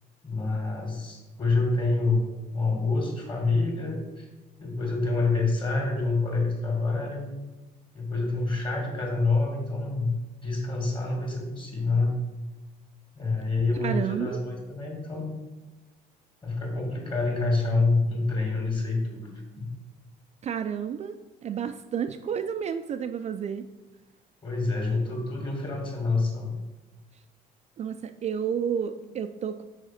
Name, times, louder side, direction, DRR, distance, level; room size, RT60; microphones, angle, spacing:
voice 1, 0.2-4.3 4.6-7.3 7.9-10.1 10.4-12.1 13.2-15.3 16.4-19.3 19.6-19.7 24.4-26.5, left 3 dB, 30° left, 0 dB, 2.4 m, -27 dB
voice 2, 13.8-14.4 19.5-19.7 20.4-21.2 21.4-23.6 27.8-29.6, right 8 dB, 40° right, 8 dB, 0.4 m, -31 dB
6.3 x 5.0 x 5.8 m, 1.1 s
cardioid pair, 110°, 17 cm